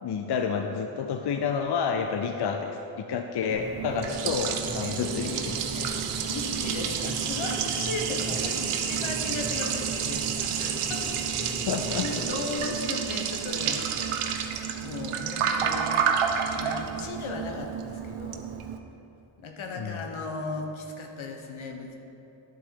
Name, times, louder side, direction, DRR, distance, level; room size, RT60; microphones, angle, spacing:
voice 1, 0.0-6.3 11.6-12.1 19.8-20.0, left 6 dB, 55° left, 5 dB, 0.6 m, -30 dB
Clock, 3.5-12.6, equal, 15° left, 1.8 m, -40 dB
Liquid, 3.6-18.8, right 7 dB, 90° right, 0.7 m, -30 dB
voice 2, 6.3-11.4 12.0-14.5 14.8-15.9 16.5-18.4 19.4-21.9, left 3 dB, 75° left, 3 dB, 1.0 m, -36 dB
10.5 x 4.2 x 4.5 m, 2.8 s
cardioid pair, 60°, 49 cm